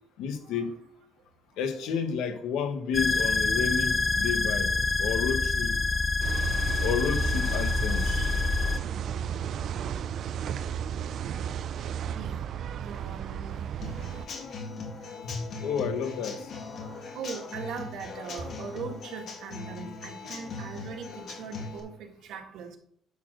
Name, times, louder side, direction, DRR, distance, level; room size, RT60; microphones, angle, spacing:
voice 1, 0.2-0.8 1.6-4.7 5.0-5.8 6.8-8.2 15.2-16.5, left 6 dB, 80° left, 1.5 m, -31 dB
sound 1, 2.9-8.8, left 3 dB, 20° left, 0.3 m, -26 dB
sound 2, 6.2-14.3, right 9 dB, 45° right, 0.4 m, -33 dB
voice 2, 12.0-12.5 12.7-13.6 14.3-15.1 16.7-22.8, right 6 dB, 60° right, 1.7 m, -41 dB
Human voice / Acoustic guitar / Drum, 13.8-21.8, left 4 dB, 45° left, 2.2 m, -40 dB
11.0 x 4.3 x 6.3 m
cardioid pair, 180°, 0 cm